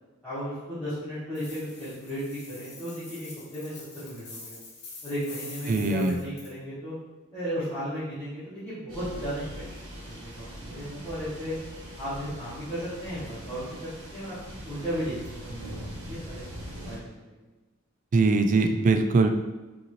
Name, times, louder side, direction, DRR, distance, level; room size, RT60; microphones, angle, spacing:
voice 1, 0.2-4.6 5.0-7.0 7.3-9.6 10.2-11.6 12.0-14.3 14.6-16.5 16.8-17.0 17.3-17.4, equal, 5° left, -16 dB, 1.4 m, -35 dB
sound 1, 1.4-6.5, left 3 dB, 50° left, 1.1 m, -45 dB
voice 2, 5.7-6.2 18.1-19.3, right 3 dB, 40° right, 7 dB, 0.3 m, -21 dB
sound 2, 8.9-17.0, equal, 70° right, 1.3 m, -41 dB
5.1 x 2.8 x 3.0 m, 1.2 s
head